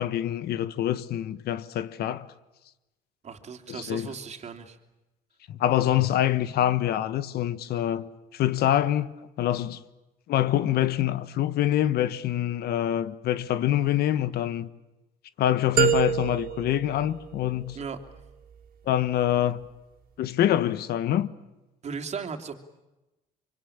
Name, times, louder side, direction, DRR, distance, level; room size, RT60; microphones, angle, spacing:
voice 1, 0.0-2.3 3.7-4.1 5.5-9.8 10.3-14.7 15.4-17.8 18.9-19.7 20.2-21.3, left 12 dB, 70° left, 1.3 m, -25 dB
voice 2, 3.2-4.8 17.7-18.0 21.8-22.5, right 6 dB, 40° right, 2.9 m, -36 dB
sound 1, 15.8-17.8, right 10 dB, 60° right, 2.8 m, -27 dB
25.0 x 25.0 x 8.8 m
cardioid pair, 110°, 17 cm